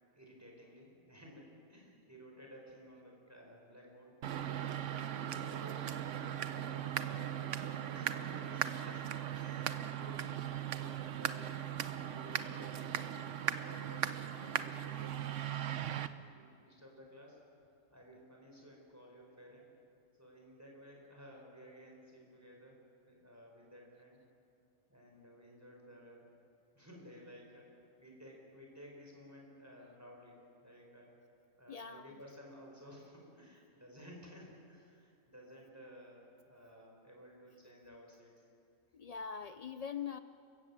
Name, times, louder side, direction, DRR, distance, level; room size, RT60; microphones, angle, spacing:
voice 1, 0.2-4.1 4.4-4.7 5.2-5.9 6.2-10.3 10.6-13.2 13.6-15.5 15.9-17.4 17.9-19.7 20.2-22.8 23.0-24.2 24.9-26.2 26.8-31.1 31.6-38.3, equal, 10° right, -1 dB, 5.4 m, -55 dB
sound 1, 4.2-16.1, right 10 dB, 60° right, 1.1 m, -38 dB
voice 2, 31.7-32.2 38.9-40.2, left 7 dB, 75° left, 10 dB, 0.3 m, -42 dB
30.0 x 16.0 x 7.4 m, 2.5 s
omnidirectional pair, 1.5 m